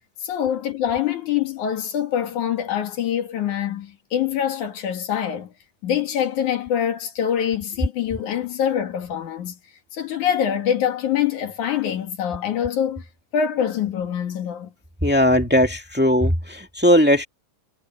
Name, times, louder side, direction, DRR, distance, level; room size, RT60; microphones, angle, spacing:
voice 1, 0.2-5.5 5.8-9.6 9.9-13.0 13.3-14.7, left 9 dB, 75° left, 3.4 m, -24 dB
voice 2, 15.0-17.2, equal, 5° right, 1.2 m, -18 dB
omnidirectional pair, 3.5 m